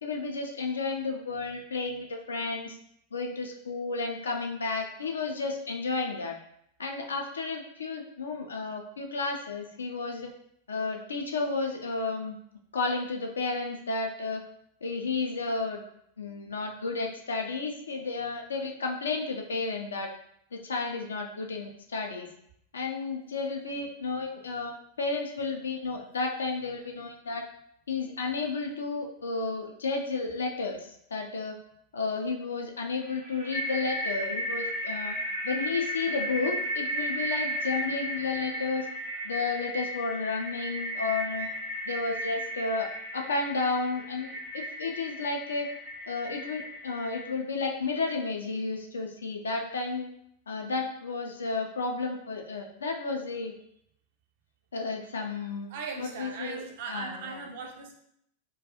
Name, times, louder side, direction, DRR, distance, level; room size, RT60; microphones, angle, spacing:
voice 1, 0.0-2.8 3.1-6.4 6.8-10.3 10.7-12.4 12.7-14.4 14.8-15.8 16.2-20.1 20.5-22.3 22.7-27.4 27.9-31.6 31.9-35.1 35.4-38.9 39.2-41.5 41.9-42.9 43.1-45.7 46.1-50.1 50.5-53.5 54.7-55.7 56.0-56.6 56.9-57.4, left 3 dB, 70° left, 2 dB, 0.4 m, -32 dB
sound 1, 33.0-47.3, equal, 70° right, 0.9 m, -35 dB
voice 2, 55.7-57.9, right 5 dB, 55° right, 2 dB, 0.4 m, -39 dB
2.3 x 2.2 x 2.7 m, 0.72 s
figure-of-eight pair, 90°, 0 cm